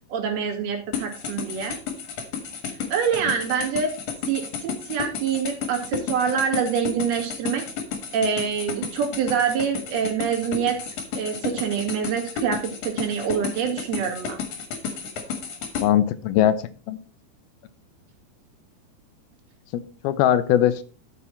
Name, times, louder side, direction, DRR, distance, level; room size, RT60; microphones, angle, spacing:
voice 1, 0.1-1.8 2.7-3.9 4.3-7.6 8.1-10.8 11.1-14.4, right 7 dB, 75° right, 3 dB, 4.0 m, -26 dB
sound 1, 0.9-15.9, left 6 dB, 60° left, 2.7 m, -32 dB
voice 2, 15.8-17.0 19.7-20.8, left 11 dB, 80° left, 14 dB, 2.5 m, -21 dB
12.5 x 6.2 x 4.2 m, 0.37 s
omnidirectional pair, 4.5 m